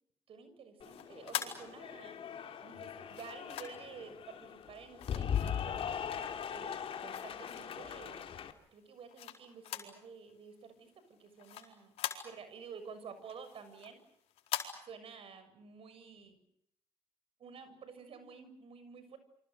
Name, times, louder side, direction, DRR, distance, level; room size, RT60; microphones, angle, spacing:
voice 1, 0.3-2.2 2.6-6.0 6.5-8.3 8.7-14.0 14.8-16.4 17.4-19.2, right 6 dB, 65° right, 11 dB, 6.7 m, -51 dB
sound 1, 0.8-2.3 3.1-4.0 5.0-6.1 6.5-7.9 8.4-10.0 10.3-10.4 10.8-12.7 13.1-14.7, left 11 dB, 90° left, 4.3 m, -43 dB
Cheering / Applause, 0.8-8.5, left 8 dB, 65° left, 2.8 m, -40 dB
29.0 x 25.5 x 6.8 m, 0.74 s
cardioid pair, 80°, 10 cm